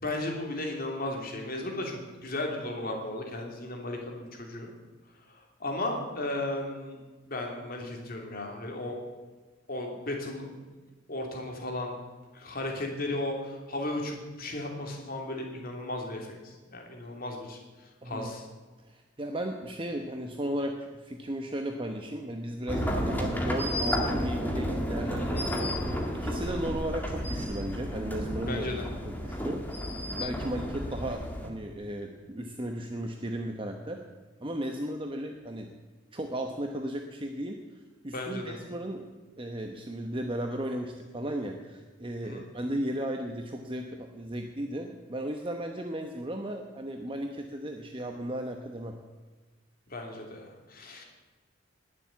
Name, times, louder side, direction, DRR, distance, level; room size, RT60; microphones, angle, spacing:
voice 1, 0.0-4.7 5.6-7.0 7.3-9.0 9.7-10.6 11.1-12.0 12.3-17.6 18.0-18.4 25.2-25.5 26.4-26.6 28.4-28.9 38.1-38.5 42.2-42.5 49.9-51.0, left 1 dB, 45° left, 1 dB, 3.0 m, -35 dB
voice 2, 18.0-18.3 18.9-25.7 26.1-28.7 29.1-29.6 30.1-34.0 34.4-35.7 36.1-37.6 38.0-39.1 39.4-48.9, right 1 dB, 25° right, 3 dB, 1.0 m, -35 dB
sound 1, 22.7-31.5, equal, 10° left, 2.0 m, -32 dB
20.0 x 7.5 x 8.3 m, 1.3 s
head